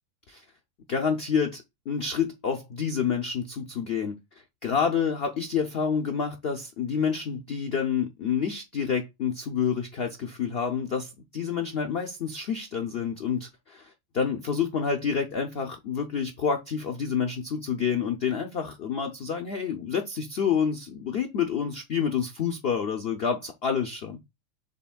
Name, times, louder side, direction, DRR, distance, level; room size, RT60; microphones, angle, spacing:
voice 1, 0.9-4.2 4.6-24.2, left 6 dB, 80° left, 0.5 m, -28 dB
6.6 x 3.5 x 2.2 m
omnidirectional pair, 1.8 m